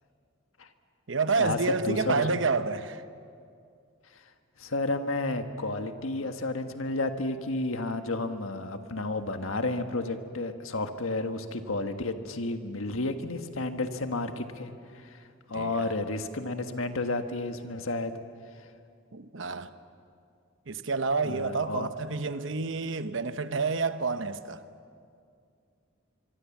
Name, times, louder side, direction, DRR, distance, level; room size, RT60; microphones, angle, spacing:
voice 1, 1.1-3.0 15.5-15.9 19.1-19.7 20.7-24.6, right 4 dB, 65° right, 1.0 m, -29 dB
voice 2, 1.8-2.3 4.6-15.2 15.5-18.1 21.2-21.9, left 2 dB, 80° left, 1.6 m, -31 dB
24.5 x 24.0 x 7.3 m
head